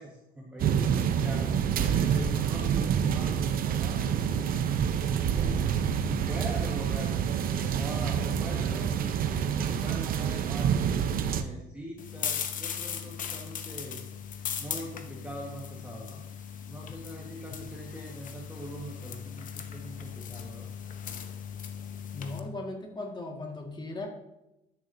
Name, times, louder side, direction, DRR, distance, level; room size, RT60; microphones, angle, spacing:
voice 1, 0.0-4.5 5.1-5.6 6.0-14.0 14.6-16.2 16.7-20.7, right 1 dB, 10° right, -3 dB, 1.5 m, -42 dB
sound 1, 0.6-11.4, right 8 dB, 60° right, 0.7 m, -27 dB
sound 2, 12.0-22.4, left 8 dB, 50° left, 0.9 m, -38 dB
voice 2, 22.1-24.1, left 2 dB, 25° left, 1 dB, 1.9 m, -37 dB
11.5 x 6.9 x 2.7 m, 0.92 s
cardioid pair, 110°, 17 cm